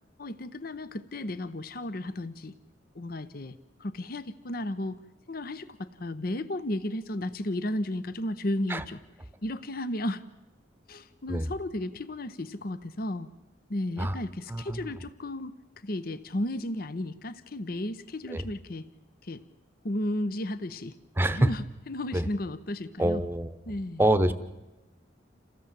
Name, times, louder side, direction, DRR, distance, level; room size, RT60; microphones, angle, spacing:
voice 1, 0.2-2.5 2.9-5.0 5.3-9.0 9.4-10.2 10.9-13.3 13.7-15.5 15.8-18.9 19.2-19.4 19.8-21.0 21.3-23.3 23.7-24.0, left 1 dB, 50° left, 13 dB, 0.8 m, -34 dB
voice 2, 14.5-14.9 18.3-18.5 21.2-21.5 22.1-22.3 23.0-23.5 24.0-24.3, right 1 dB, 10° right, 13 dB, 0.9 m, -25 dB
28.0 x 16.0 x 7.5 m, 1.0 s
head